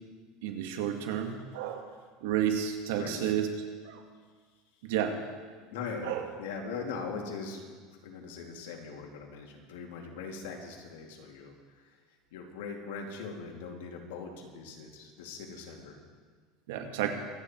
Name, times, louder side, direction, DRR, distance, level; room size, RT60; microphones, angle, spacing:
voice 1, 0.4-1.9 2.2-3.5 3.8-4.0 4.8-5.2 6.0-6.3 16.7-17.1, right 10 dB, 85° right, 4 dB, 1.9 m, -31 dB
voice 2, 3.0-3.3 5.7-7.6 7.9-12.0 12.3-16.0, left 5 dB, 85° left, 1 dB, 2.6 m, -41 dB
25.0 x 9.3 x 4.5 m, 1.5 s
supercardioid pair, 135°, 0 cm